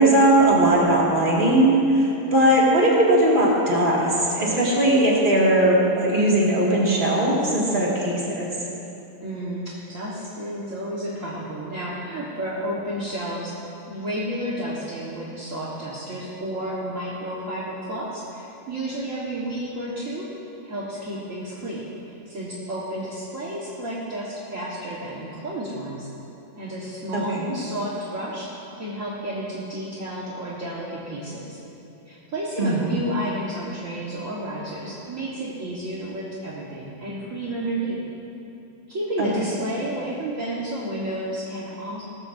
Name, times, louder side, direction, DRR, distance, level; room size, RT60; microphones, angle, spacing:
voice 1, 0.0-8.5 27.1-27.5 32.6-33.0 39.2-39.3, right 1 dB, 30° right, -5 dB, 2.4 m, -19 dB
voice 2, 9.2-13.6 13.9-20.3 20.6-26.1 26.5-31.6 32.0-38.0 38.9-42.0, right 1 dB, 50° right, -7 dB, 1.8 m, -31 dB
18.0 x 14.5 x 2.7 m, 2.9 s
omnidirectional pair, 1.8 m